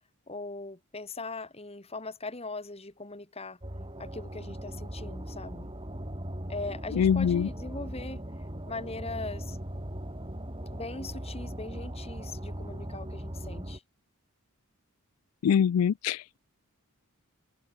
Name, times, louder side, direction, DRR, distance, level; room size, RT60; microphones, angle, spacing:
voice 1, 0.3-3.6 4.0-5.7 6.5-8.2 8.7-9.6 10.7-13.8, left 3 dB, 25° left, 2.4 m, -40 dB
sound 1, 3.6-13.8, equal, 25° right, 3.8 m, -39 dB
voice 2, 7.0-7.5 15.4-16.4, left 8 dB, 80° left, 0.3 m, -24 dB
head